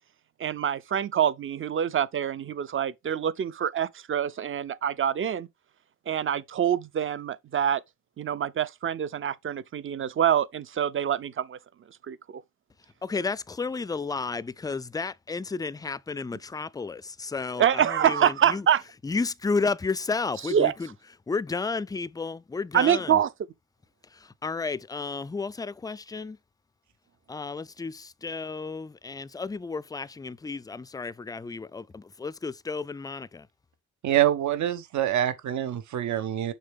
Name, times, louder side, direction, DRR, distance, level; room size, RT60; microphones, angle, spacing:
voice 1, 0.4-5.5 6.1-7.8 8.2-11.6 12.1-12.4 17.6-18.8 20.5-20.7 22.7-23.3, right 9 dB, 45° right, 0.6 m, -25 dB
voice 2, 13.0-18.6 19.0-20.9 21.3-23.2 24.2-26.4 27.3-33.5, left 4 dB, 15° left, 0.3 m, -32 dB
voice 3, 34.0-36.5, right 12 dB, 70° right, 1.1 m, -25 dB
6.5 x 4.5 x 3.5 m
cardioid pair, 90°, 30 cm